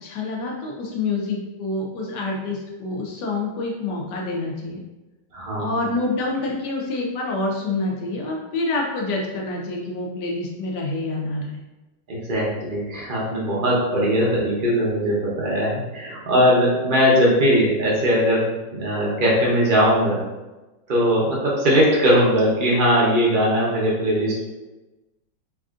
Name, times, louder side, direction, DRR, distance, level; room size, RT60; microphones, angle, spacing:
voice 1, 0.0-4.8 5.6-11.6, left 2 dB, 75° left, -1 dB, 1.2 m, -27 dB
voice 2, 5.3-5.8 12.1-20.2 20.9-24.4, equal, 55° right, -5 dB, 0.5 m, -20 dB
3.3 x 2.5 x 2.4 m, 1.1 s
omnidirectional pair, 1.9 m